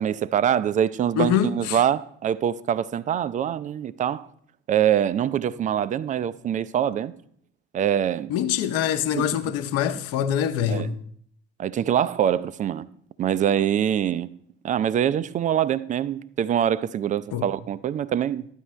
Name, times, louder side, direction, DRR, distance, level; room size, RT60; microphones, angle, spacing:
voice 1, 0.0-4.3 4.7-7.1 7.7-8.3 9.1-9.3 10.7-10.9 11.6-12.9 13.2-14.3 14.6-18.5, right 9 dB, 25° right, 0.4 m, -24 dB
voice 2, 1.2-1.8 8.3-10.9 17.3-17.5, left 9 dB, 50° left, 0.9 m, -24 dB
13.0 x 9.8 x 3.1 m
figure-of-eight pair, 60°, 32 cm